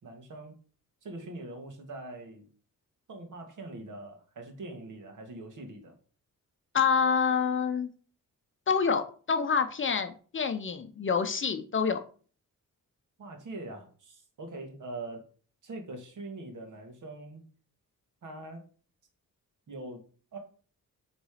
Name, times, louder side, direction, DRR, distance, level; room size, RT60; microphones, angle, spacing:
voice 1, 0.0-0.5 1.0-2.4 3.1-5.9 13.2-15.2 15.6-17.5 18.2-18.6 19.7-20.0 20.3-20.4, right 2 dB, 65° right, 3 dB, 2.1 m, -42 dB
voice 2, 6.7-7.9 8.7-12.0, left 6 dB, 35° left, 9 dB, 0.7 m, -27 dB
8.7 x 4.1 x 4.9 m, 0.41 s
wide cardioid pair, 175°, 33 cm